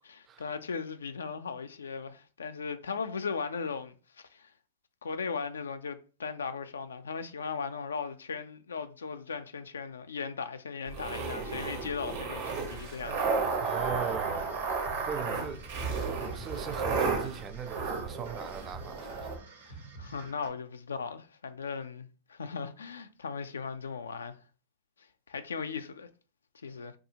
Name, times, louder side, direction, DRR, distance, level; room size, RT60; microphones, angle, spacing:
voice 1, 0.0-4.5 5.0-13.6 19.7-24.4 25.3-26.1 26.6-26.9, left 5 dB, 90° left, 0.3 m, -38 dB
sound 1, 10.9-19.4, right 4 dB, 70° right, 0.9 m, -33 dB
sound 2, 13.0-20.5, right 4 dB, 85° right, 1.3 m, -48 dB
voice 2, 13.6-14.5 15.1-19.3 19.6-19.8, right 7 dB, 30° right, 0.3 m, -40 dB
2.7 x 2.4 x 2.8 m
hypercardioid pair, 115°, 0 cm